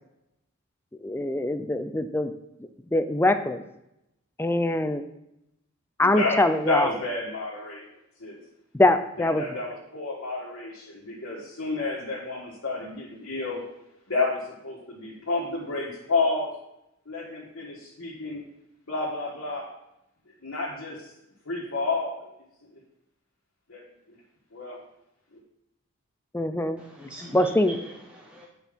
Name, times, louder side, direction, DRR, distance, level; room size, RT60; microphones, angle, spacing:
voice 1, 1.0-2.3 2.9-3.6 4.4-5.0 6.0-6.9 8.7-9.4 26.3-26.8 27.3-27.8, left 1 dB, 10° left, 9 dB, 0.4 m, -23 dB
voice 2, 6.0-7.8 8.2-8.4 9.2-13.6 14.1-16.5 17.1-18.4 18.9-19.7 20.4-21.0 21.4-22.3 23.7-23.8 24.5-24.8, left 3 dB, 70° left, -5 dB, 1.5 m, -30 dB
voice 3, 26.8-28.5, right 1 dB, 5° right, -4 dB, 0.9 m, -43 dB
8.3 x 4.5 x 5.2 m, 0.84 s
head